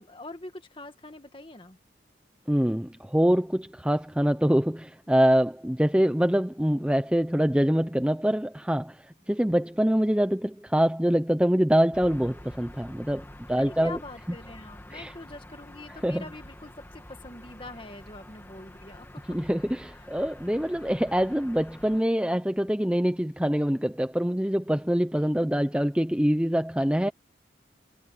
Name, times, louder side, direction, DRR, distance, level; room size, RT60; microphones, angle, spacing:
voice 1, 0.0-1.8 13.5-19.4, left 2 dB, 25° left, 2.0 m, -44 dB
voice 2, 2.5-14.0 14.9-15.1 16.0-16.2 19.3-27.1, equal, 5° right, 0.8 m, -25 dB
sound 1, 11.9-22.0, left 1 dB, 10° left, 2.0 m, -47 dB
head